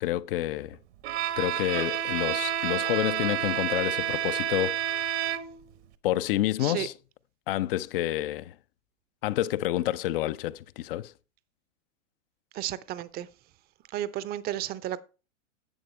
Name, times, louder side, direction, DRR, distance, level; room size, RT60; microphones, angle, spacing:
voice 1, 0.0-0.8 1.4-4.8 6.0-6.9 7.5-8.6 9.2-11.1, left 14 dB, 45° left, 0.6 m, -28 dB
Bowed string instrument, 1.0-5.7, right 11 dB, 55° right, 1.1 m, -29 dB
voice 2, 12.5-13.3 13.9-15.0, right 12 dB, 25° right, 0.6 m, -33 dB
11.0 x 8.2 x 3.2 m
figure-of-eight pair, 95°, 39 cm